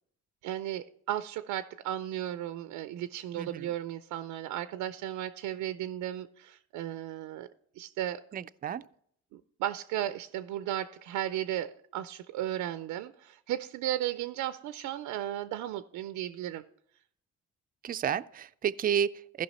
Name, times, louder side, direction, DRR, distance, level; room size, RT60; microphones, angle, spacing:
voice 1, 0.4-7.5 7.7-8.2 9.3-16.6, right 12 dB, 90° right, 0.5 m, -35 dB
voice 2, 3.4-3.7 8.3-8.8 17.8-19.4, right 9 dB, 30° right, 0.3 m, -31 dB
14.5 x 5.7 x 4.1 m
cardioid pair, 90°, 30 cm